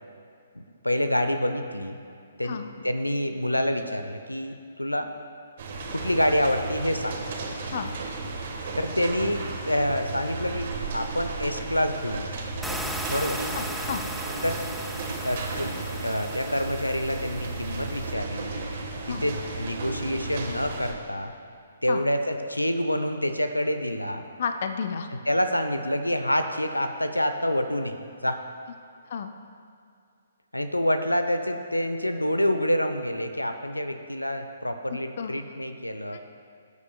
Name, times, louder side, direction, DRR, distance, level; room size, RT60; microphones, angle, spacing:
voice 1, 0.5-2.0 2.4-5.1 5.9-7.2 8.8-12.3 13.1-13.4 14.4-14.6 15.2-15.8 16.0-18.6 19.1-21.3 21.8-24.2 25.3-28.0 28.2-28.4 30.5-36.2, equal, 90° left, 8 dB, 0.6 m, -27 dB
sound 1, 5.6-20.9, right 3 dB, 45° right, 1.4 m, -34 dB
sound 2, 12.6-18.1, equal, ahead, 0.5 m, -37 dB
voice 2, 13.5-14.0 19.0-19.3 21.9-22.0 24.4-25.1 29.1-29.3 35.2-35.3 36.1-36.2, left 6 dB, 50° left, 7 dB, 0.5 m, -31 dB
17.0 x 8.3 x 2.3 m, 2.4 s
figure-of-eight pair, 130°, 0 cm